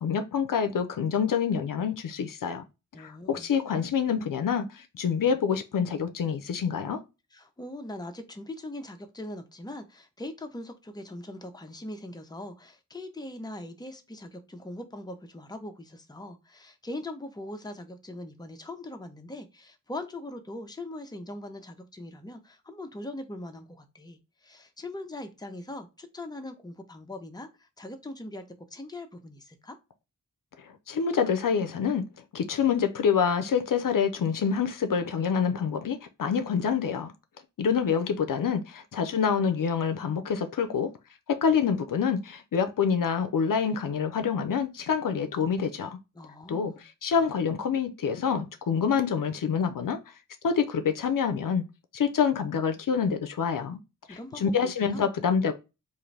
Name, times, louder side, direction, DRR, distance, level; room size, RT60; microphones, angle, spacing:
voice 1, 0.0-2.6 3.0-7.0 30.9-32.0 32.3-37.1 37.6-40.9 41.3-46.0 46.5-46.7 47.0-50.0 50.4-51.6 51.9-53.8 54.1-55.6, left 6 dB, 70° left, 0.5 m, -26 dB
voice 2, 2.9-3.5 7.3-28.4 28.7-29.8 46.1-46.8 54.1-54.5 54.8-55.1, left 1 dB, 10° left, 0.6 m, -41 dB
3.7 x 2.6 x 3.2 m
wide cardioid pair, 60°, 33 cm